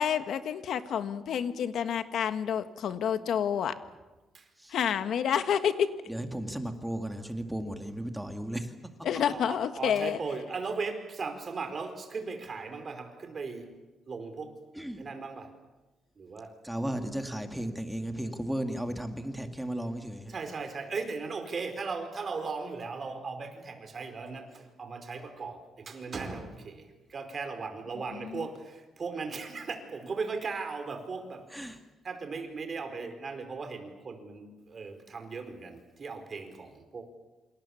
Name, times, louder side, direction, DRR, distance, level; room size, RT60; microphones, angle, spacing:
voice 1, 0.0-3.7 4.7-5.9 9.0-10.2 28.2-28.4, left 8 dB, 70° left, 9 dB, 1.7 m, -29 dB
voice 2, 6.1-8.7 14.7-15.1 16.6-20.3 31.5-31.8, right 1 dB, 5° right, 5 dB, 2.3 m, -35 dB
voice 3, 9.3-13.7 14.1-14.6 15.0-15.6 16.2-16.6 16.9-17.0 20.3-31.5 32.0-37.1, right 4 dB, 40° right, 6 dB, 4.6 m, -37 dB
27.5 x 27.5 x 7.3 m, 1.1 s
cardioid pair, 135°, 0 cm